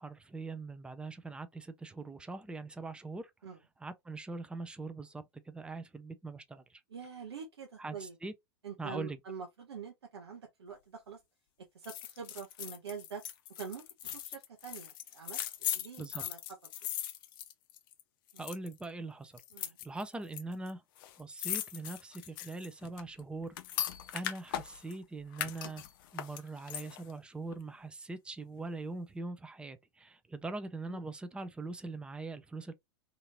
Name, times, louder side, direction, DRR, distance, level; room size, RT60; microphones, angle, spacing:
voice 1, 0.0-3.3 3.8-6.8 7.8-8.3 8.8-9.2 16.0-16.3 18.4-20.8 21.2-23.5 24.1-25.9 26.1-32.7, right 3 dB, 5° right, 0.4 m, -42 dB
voice 2, 6.9-8.2 8.6-11.2 11.7-13.2 13.6-16.4 18.3-18.4 19.5-19.8 30.9-31.0, right 6 dB, 75° right, 0.7 m, -45 dB
sound 1, 11.8-18.0 18.3-18.8 19.4-20.4 20.7-20.8 21.0-25.0 25.3-27.1 27.5-27.6, left 12 dB, 50° left, 0.5 m, -39 dB
2.8 x 2.6 x 2.8 m
figure-of-eight pair, 95°, 14 cm